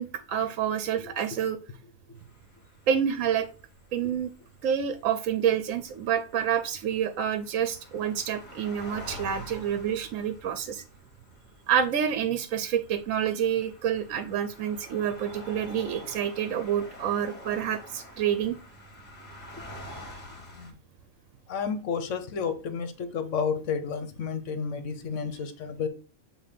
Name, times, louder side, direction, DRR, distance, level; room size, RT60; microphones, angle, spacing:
voice 1, 0.0-1.6 2.9-3.5 3.9-4.3 4.6-10.8 11.7-18.6, right 8 dB, 70° right, 10 dB, 1.0 m, -28 dB
sound 1, 2.2-20.7, equal, 30° left, 1.5 m, -47 dB
voice 2, 21.5-25.9, left 6 dB, 65° left, 11 dB, 1.1 m, -31 dB
7.4 x 2.7 x 5.0 m, 0.36 s
omnidirectional pair, 1.5 m